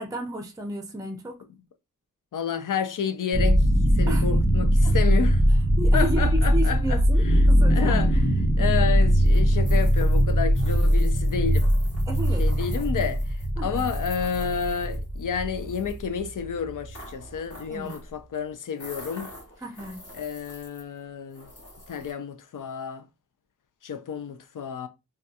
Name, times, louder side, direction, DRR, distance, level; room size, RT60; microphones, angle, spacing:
voice 1, 0.0-1.4 4.1-4.3 4.8-4.9 5.8-8.0 12.1-12.4 13.6-13.9 17.7-18.0 19.6-20.0, right 1 dB, 10° right, 0.5 m, -33 dB
voice 2, 2.3-3.7 4.0-5.4 5.9-8.3 8.6-11.7 12.4-19.3 20.1-21.5 21.9-23.1 23.8-24.9, left 7 dB, 65° left, 0.5 m, -30 dB
sound 1, 3.3-17.3, equal, 5° left, 0.9 m, -21 dB
sound 2, 9.2-15.2 15.5-16.0 16.9-18.2 18.8-21.0 21.3-22.1, left 1 dB, 45° left, 1.8 m, -45 dB
3.5 x 2.3 x 2.7 m
wide cardioid pair, 90°, 35 cm